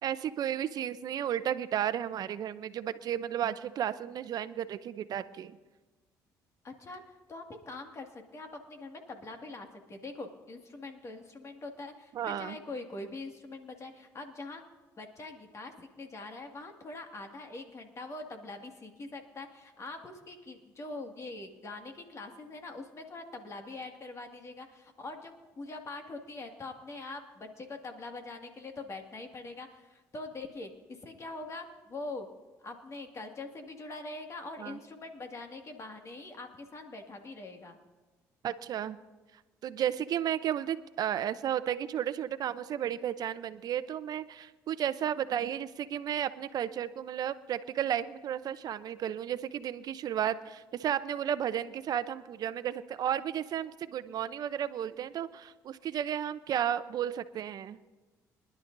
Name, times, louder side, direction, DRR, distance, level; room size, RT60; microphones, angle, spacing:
voice 1, 0.0-5.6 12.1-12.6 34.6-34.8 38.4-39.0 39.6-57.8, right 10 dB, 60° right, 13 dB, 0.7 m, -33 dB
voice 2, 6.6-7.0 7.3-14.6 15.0-32.3 32.6-37.8, left 2 dB, 40° left, 3 dB, 2.0 m, -43 dB
24.5 x 11.5 x 2.7 m, 1.2 s
supercardioid pair, 70°, 7 cm